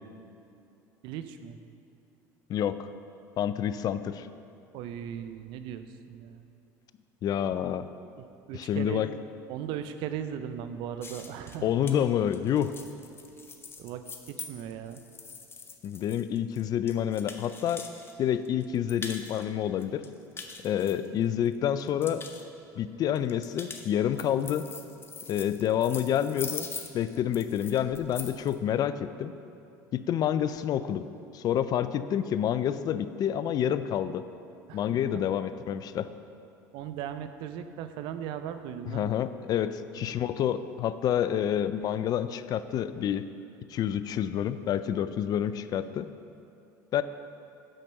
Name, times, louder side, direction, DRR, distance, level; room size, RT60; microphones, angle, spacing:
voice 1, 1.0-1.6 4.7-6.4 8.2-9.1 9.5-11.7 13.8-15.0 34.7-35.0 36.7-39.2 39.5-40.2, right 9 dB, 65° right, 10 dB, 0.5 m, -38 dB
voice 2, 2.5-2.9 3.4-4.3 7.2-7.9 8.5-9.1 11.6-12.7 15.8-17.9 18.2-20.0 20.6-22.2 22.8-24.7 25.3-26.7 26.9-29.3 29.9-31.1 31.3-34.2 34.7-36.1 38.9-43.2 43.7-46.1 46.9-47.0, left 10 dB, 45° left, 13 dB, 0.4 m, -28 dB
sound 1, 11.0-18.1 18.4-19.4 19.8-21.5 21.8-22.4 23.2-28.5, left 4 dB, 25° left, 0.8 m, -42 dB
6.4 x 5.9 x 6.4 m, 2.7 s
supercardioid pair, 90°, 9 cm